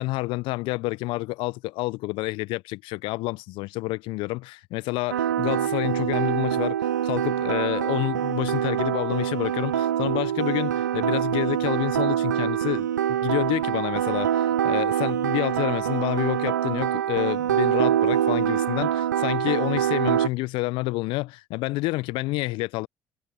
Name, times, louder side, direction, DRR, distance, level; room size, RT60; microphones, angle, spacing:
voice 1, 0.0-22.9, left 21 dB, 65° left, 1.2 m, -29 dB
sound 1, 5.1-20.3, right 10 dB, 85° right, 1.0 m, -25 dB
figure-of-eight pair, 50°, 9 cm